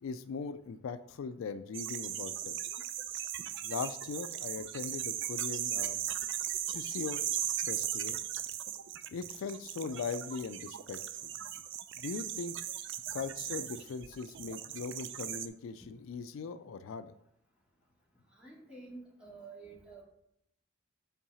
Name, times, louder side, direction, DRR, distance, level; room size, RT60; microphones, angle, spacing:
voice 1, 0.0-2.6 3.6-6.0 6.7-7.2 7.7-8.2 9.1-11.3 12.0-12.6 13.1-17.1, left 5 dB, 70° left, 11 dB, 0.4 m, -40 dB
sound 1, 1.7-15.5, right 10 dB, 65° right, 0.5 m, -38 dB
voice 2, 18.3-20.0, right 3 dB, 5° right, -5 dB, 2.4 m, -50 dB
5.7 x 4.7 x 5.5 m, 0.73 s
head